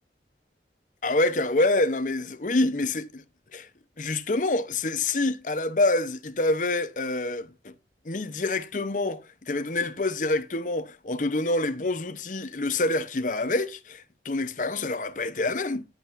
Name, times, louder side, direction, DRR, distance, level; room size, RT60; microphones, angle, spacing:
voice 1, 1.0-3.2 3.5-3.7 4.0-7.7 8.0-15.9, left 2 dB, 45° left, 0.7 m, -27 dB
10.5 x 8.1 x 2.5 m
head